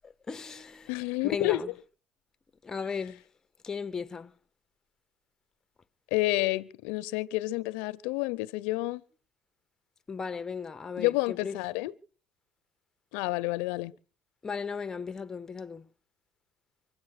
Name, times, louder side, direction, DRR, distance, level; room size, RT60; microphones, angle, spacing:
voice 1, 0.0-1.0 1.2-1.7 2.6-3.2 3.6-4.3 10.1-11.6 14.4-15.9, left 5 dB, 20° left, 0.8 m, -36 dB
voice 2, 0.9-1.6 6.1-9.0 11.0-11.9 13.1-13.9, left 19 dB, 80° left, 0.7 m, -29 dB
25.0 x 8.5 x 6.6 m
supercardioid pair, 115°, 3 cm